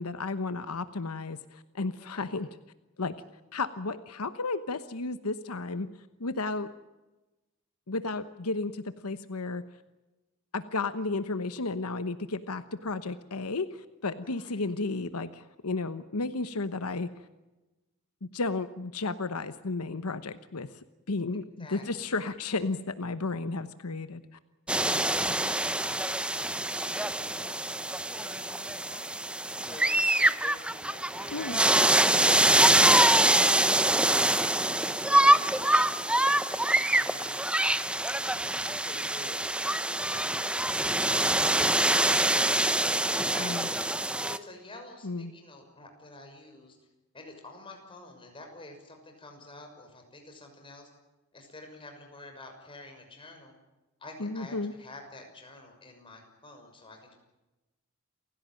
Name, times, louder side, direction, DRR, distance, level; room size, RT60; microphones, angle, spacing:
voice 1, 0.0-2.5 3.0-3.1 3.5-5.9 6.2-6.7 7.9-9.6 10.5-17.1 18.2-20.7 21.1-24.2 24.9-25.0 25.3-25.5 31.3-31.6 43.4-43.7 45.0-45.3 54.2-54.7, left 3 dB, 85° left, 12 dB, 1.1 m, -33 dB
voice 2, 2.0-2.4 14.2-14.7 21.6-22.2 25.8-29.0 29.7-31.5 31.9-38.1 38.5-43.8 44.2-46.8 47.1-50.9 51.3-53.5 54.0-57.1, left 2 dB, 25° left, 3 dB, 6.2 m, -49 dB
sound 1, 24.7-44.4, right 1 dB, 5° right, 0.8 m, -25 dB
29.0 x 16.5 x 9.1 m, 1.1 s
head